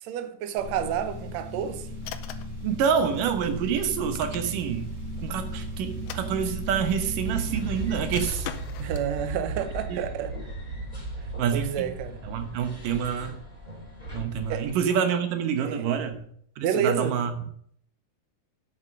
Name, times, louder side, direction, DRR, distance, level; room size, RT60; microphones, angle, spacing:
voice 1, 0.0-1.8 8.8-10.3 11.5-12.2 14.5-14.6 15.6-15.8 16.6-17.1, right 8 dB, 70° right, 1.9 m, -29 dB
sound 1, 0.6-8.3, right 1 dB, 45° right, 5.1 m, -35 dB
sound 2, 2.0-2.6 3.9-4.8 5.9-6.9 8.1-9.1, left 10 dB, 75° left, 1.5 m, -41 dB
voice 2, 2.6-4.9 5.2-8.5 9.9-10.0 11.4-11.9 12.2-13.4 14.1-16.3 16.6-17.3, right 7 dB, 85° right, 2.8 m, -27 dB
sound 3, 7.2-14.7, right 2 dB, 10° left, 3.4 m, -37 dB
9.3 x 7.9 x 6.3 m
omnidirectional pair, 3.7 m